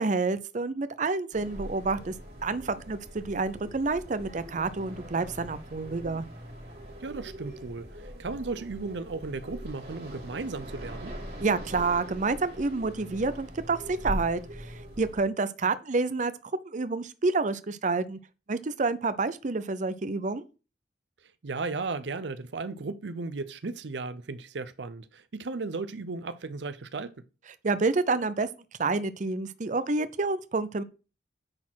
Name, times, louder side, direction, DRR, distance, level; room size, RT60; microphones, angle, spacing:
voice 1, 0.0-2.1 2.4-6.2 11.4-16.3 16.6-18.2 18.5-20.4 27.6-28.5 28.8-30.8, right 3 dB, 45° right, 0.6 m, -28 dB
sound 1, 1.3-15.2, equal, 60° right, 3.6 m, -41 dB
voice 2, 7.0-11.1 21.4-27.2, right 3 dB, 85° right, 0.6 m, -35 dB
9.7 x 4.3 x 6.3 m
head